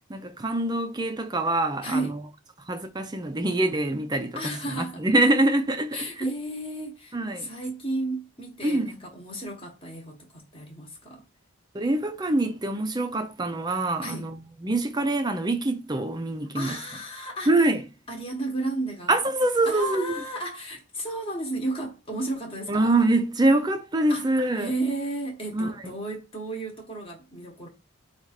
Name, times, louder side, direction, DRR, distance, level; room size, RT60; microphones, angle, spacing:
voice 1, 0.1-2.1 2.7-6.1 7.1-7.5 8.6-8.9 11.7-16.8 17.5-17.8 19.1-20.1 22.7-24.7 25.5-25.7, right 2 dB, 20° right, 0.4 m, -25 dB
voice 2, 1.8-2.1 4.3-5.0 5.9-11.2 14.0-14.3 16.5-17.5 18.1-19.3 19.7-22.9 24.1-27.7, right 2 dB, 25° left, 1.0 m, -33 dB
4.7 x 2.4 x 4.1 m
head